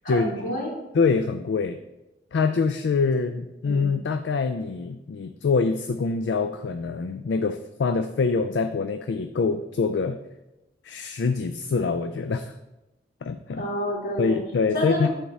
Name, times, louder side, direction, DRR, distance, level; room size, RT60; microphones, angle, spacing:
voice 1, 0.0-0.7 3.6-3.9 13.6-14.4 14.7-15.1, equal, 50° left, -5 dB, 2.3 m, -28 dB
voice 2, 0.9-1.8 2.3-10.2 10.8-12.5 13.2-13.6 14.2-15.1, left 4 dB, 75° left, 8 dB, 0.4 m, -25 dB
10.0 x 3.6 x 4.0 m, 0.98 s
head